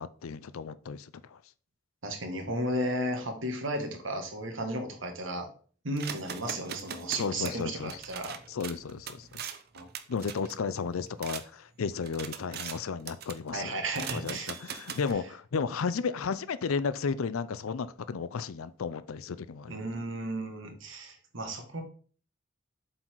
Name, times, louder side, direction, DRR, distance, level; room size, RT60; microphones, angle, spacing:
voice 1, 0.0-1.4 7.2-8.0 8.5-9.4 10.1-13.7 14.1-19.9, left 5 dB, 85° left, 16 dB, 0.5 m, -33 dB
voice 2, 2.0-5.5 5.8-8.4 9.7-9.9 13.5-14.5 19.7-21.8, right 1 dB, 65° right, 4 dB, 1.7 m, -34 dB
sound 1, 6.0-11.4 11.9-12.8 13.1-13.5 13.9-15.1, right 8 dB, 50° right, 0.7 m, -41 dB
7.6 x 4.1 x 4.6 m, 0.42 s
head